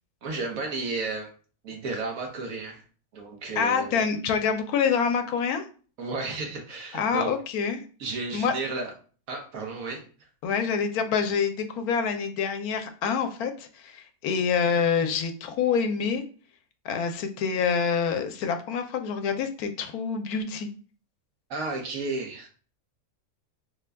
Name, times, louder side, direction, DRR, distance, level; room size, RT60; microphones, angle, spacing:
voice 1, 0.2-1.3 1.6-2.8 3.1-4.1 6.0-7.3 8.0-8.9 9.3-10.0 21.5-22.5, right 3 dB, 70° right, 1.3 m, -33 dB
voice 2, 3.6-5.6 6.9-7.8 8.3-8.5 10.4-16.2 16.8-20.7, left 6 dB, 85° left, 1.1 m, -26 dB
3.8 x 2.2 x 3.3 m
omnidirectional pair, 1.5 m